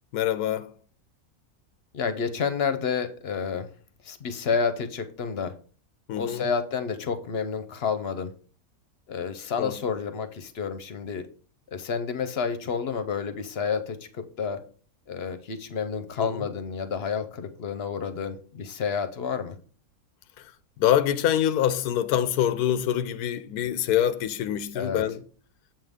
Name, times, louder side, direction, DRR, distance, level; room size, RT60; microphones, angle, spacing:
voice 1, 0.1-0.7 6.1-6.5 9.5-9.8 16.2-16.5 20.4-20.5 20.8-25.2, left 10 dB, 90° left, 1.1 m, -25 dB
voice 2, 1.9-3.7 4.0-5.5 6.1-8.3 9.1-11.2 11.7-14.6 15.1-19.6 24.7-25.0, left 6 dB, 55° left, 0.8 m, -30 dB
7.5 x 5.6 x 3.6 m
omnidirectional pair, 1.6 m